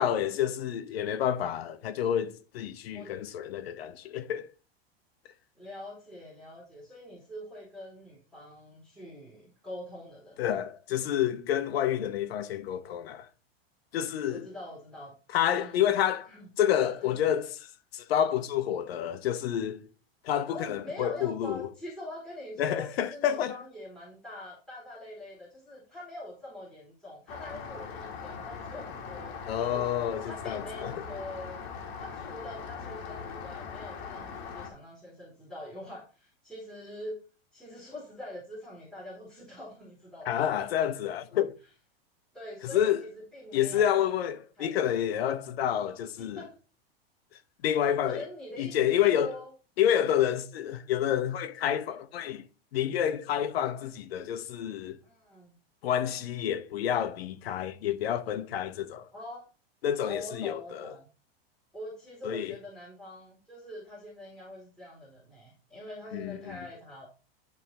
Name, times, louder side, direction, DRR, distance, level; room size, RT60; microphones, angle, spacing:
voice 1, 0.0-4.5 10.4-13.3 13.9-14.5 15.3-16.3 16.6-19.8 20.2-21.7 22.6-23.6 29.5-30.9 40.3-41.5 42.7-43.0 43.5-46.4 47.6-48.2 48.6-49.3 49.8-52.4 52.7-55.0 55.8-59.1 59.8-60.9 62.2-62.5 66.1-66.6, left 10 dB, 75° left, 1.0 m, -29 dB
voice 2, 5.6-10.5 14.3-15.2 15.5-15.8 16.3-16.5 16.8-17.2 20.5-29.9 30.2-31.6 32.0-37.2 37.5-40.5 42.3-43.9 44.6-44.8 46.2-46.6 48.1-49.5 55.0-55.5 59.1-59.4 60.0-61.1 61.7-67.1, left 1 dB, ahead, 2.9 m, -44 dB
Rain, 27.3-34.7, left 6 dB, 50° left, 2.3 m, -41 dB
11.0 x 3.6 x 4.2 m
hypercardioid pair, 120°, 30 cm